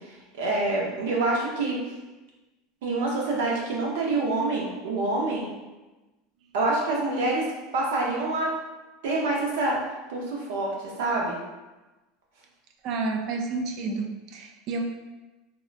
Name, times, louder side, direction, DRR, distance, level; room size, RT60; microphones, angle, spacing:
voice 1, 0.0-1.8 2.8-5.5 6.5-7.5 7.7-8.5 9.0-9.8 10.1-11.4, right 2 dB, 85° right, -2 dB, 0.8 m, -26 dB
voice 2, 12.8-14.8, right 3 dB, 40° right, 3 dB, 0.3 m, -30 dB
3.5 x 2.2 x 2.5 m, 1.1 s
supercardioid pair, 170°, 0 cm